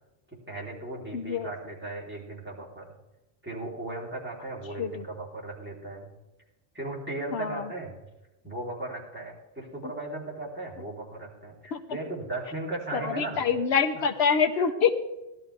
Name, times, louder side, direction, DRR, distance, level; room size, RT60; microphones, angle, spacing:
voice 1, 0.5-2.8 3.4-6.1 6.7-8.1 8.4-13.5 13.9-14.0 14.5-14.7, right 2 dB, 10° right, -5 dB, 3.5 m, -37 dB
voice 2, 1.1-1.5 4.8-5.0 7.3-7.5 11.7-11.8 12.9-15.0, left 6 dB, 80° left, 8 dB, 1.0 m, -25 dB
17.0 x 12.5 x 3.4 m, 1.0 s
omnidirectional pair, 1.1 m